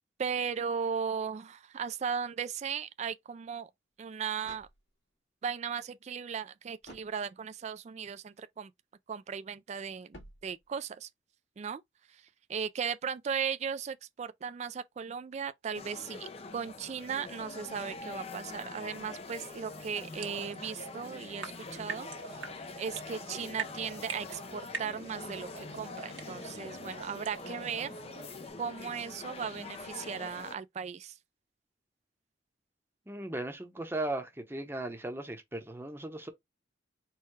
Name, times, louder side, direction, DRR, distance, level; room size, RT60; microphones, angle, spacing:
voice 1, 0.2-3.7 4.0-4.7 5.4-8.7 9.1-11.1 11.6-11.8 12.1-12.2 12.5-22.1 22.8-27.9 28.6-31.2, right 6 dB, 35° right, 0.3 m, -37 dB
sound 1, 3.9-5.3 6.8-7.7 10.1-11.0, left 1 dB, 70° left, 2.1 m, -55 dB
sound 2, 15.7-30.5, left 3 dB, 30° left, 0.5 m, -44 dB
sound 3, 18.9-28.5, right 5 dB, 80° right, 1.4 m, -45 dB
voice 2, 33.1-36.3, right 1 dB, 10° right, 0.8 m, -37 dB
4.5 x 2.2 x 4.6 m
head